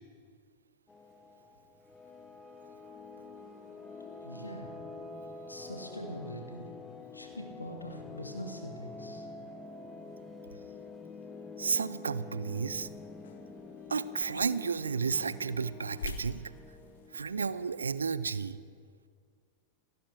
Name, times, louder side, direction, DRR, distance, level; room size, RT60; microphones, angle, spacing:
sound 1, 0.9-18.4, left 3 dB, 10° left, 1.2 m, -47 dB
voice 1, 4.2-4.7 5.5-6.7 7.1-9.3, equal, 85° left, 3 dB, 2.0 m, -43 dB
voice 2, 11.6-12.9 13.9-16.4 17.1-18.6, right 5 dB, 75° right, 16 dB, 0.5 m, -32 dB
sound 2, 12.4-17.8, left 4 dB, 65° left, 1.2 m, -48 dB
28.0 x 12.0 x 3.4 m, 2.1 s
figure-of-eight pair, 90°, 0 cm